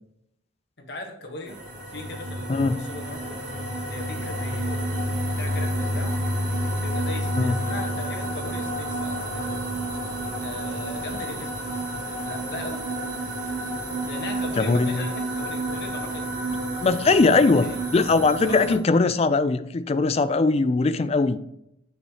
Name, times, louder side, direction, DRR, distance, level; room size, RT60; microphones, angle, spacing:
voice 1, 0.8-1.6 1.9-3.4 3.9-6.2 6.8-9.6 10.4-11.6 12.2-12.9 14.0-16.3 17.6-17.8 18.5-18.8, left 2 dB, 55° left, 2 dB, 1.3 m, -38 dB
sound 1, 1.5-18.8, right 1 dB, 75° right, 2.6 m, -30 dB
voice 2, 14.6-15.1 16.8-21.4, left 3 dB, 30° left, 12 dB, 0.3 m, -20 dB
6.9 x 6.5 x 2.9 m, 0.80 s
head